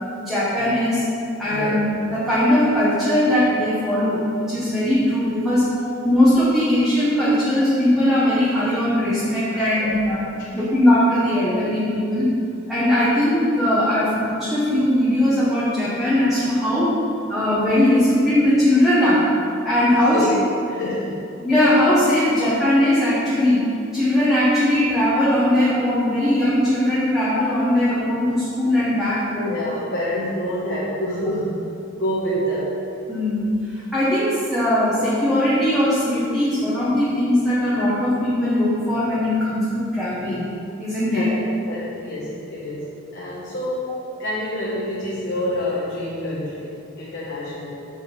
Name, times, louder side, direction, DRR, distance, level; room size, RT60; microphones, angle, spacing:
voice 1, 0.2-1.0 1.4-1.8 2.1-5.7 6.0-10.2 10.5-12.3 12.7-16.9 17.3-19.2 19.6-20.2 21.4-29.6 33.1-40.5 40.8-41.3 43.9-44.0, left 1 dB, ahead, -11 dB, 1.4 m, -19 dB
voice 2, 19.9-20.3 20.7-21.2 26.1-26.2 29.4-32.7 41.1-43.8 44.2-47.8, left 1 dB, 60° left, -7 dB, 1.3 m, -27 dB
7.6 x 6.0 x 4.5 m, 2.6 s
head